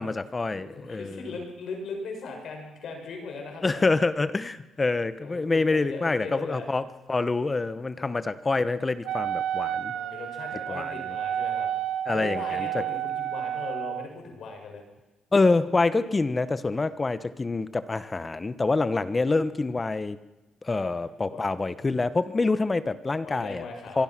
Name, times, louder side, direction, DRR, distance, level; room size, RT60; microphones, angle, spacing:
voice 1, 0.0-1.3 3.6-9.9 10.7-10.9 12.1-12.7 15.3-20.2 20.6-23.7 23.9-24.0, left 3 dB, 25° left, 13 dB, 1.2 m, -26 dB
voice 2, 0.7-3.8 5.2-6.7 7.9-8.1 9.9-11.7 12.1-14.8 20.7-20.9 21.3-21.4 23.2-24.0, left 4 dB, 70° left, 2 dB, 6.9 m, -39 dB
Wind instrument woodwind instrument, 9.0-14.1, right 10 dB, 85° right, 1.1 m, -30 dB
24.5 x 24.0 x 6.1 m, 1.1 s
cardioid pair, 90°, 0 cm